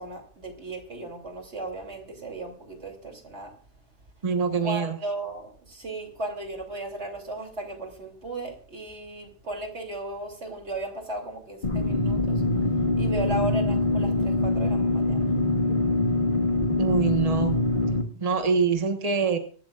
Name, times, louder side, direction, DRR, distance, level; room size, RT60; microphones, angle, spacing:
voice 1, 0.0-3.5 4.6-12.4 13.0-15.3, right 2 dB, 85° right, 2 dB, 3.3 m, -35 dB
voice 2, 4.2-5.0 16.8-17.6 18.1-19.4, right 5 dB, 35° right, 5 dB, 1.4 m, -24 dB
sound 1, 11.6-18.0, left 2 dB, 50° left, 1.9 m, -24 dB
23.5 x 12.0 x 2.5 m, 0.43 s
omnidirectional pair, 1.1 m